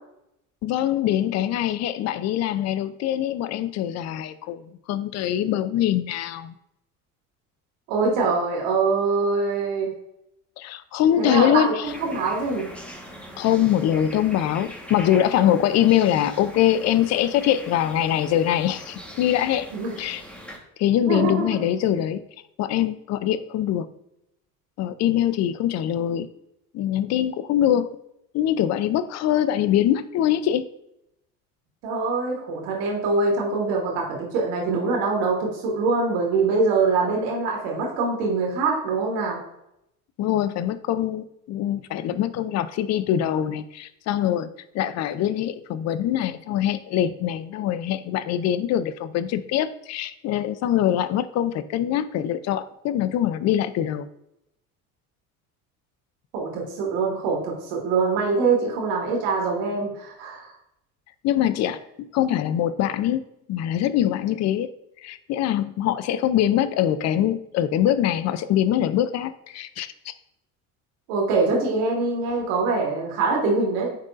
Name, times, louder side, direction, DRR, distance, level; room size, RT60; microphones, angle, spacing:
voice 1, 0.6-6.5 10.6-11.9 13.4-19.7 20.0-20.2 20.8-22.2 22.6-23.9 24.8-26.3 26.7-27.9 28.3-30.6 40.2-44.5 44.7-54.1 61.2-61.8 62.1-64.7 65.0-70.1, left 11 dB, 40° left, 14 dB, 0.5 m, -23 dB
voice 2, 7.9-9.9 11.2-12.7 19.7-20.0 21.1-21.6 31.8-39.4 56.3-60.5 71.1-74.0, right 4 dB, 70° right, -1 dB, 2.2 m, -24 dB
sound 1, 11.8-20.6, equal, 5° left, 1.3 m, -42 dB
9.5 x 4.0 x 2.5 m, 0.81 s
hypercardioid pair, 70°, 44 cm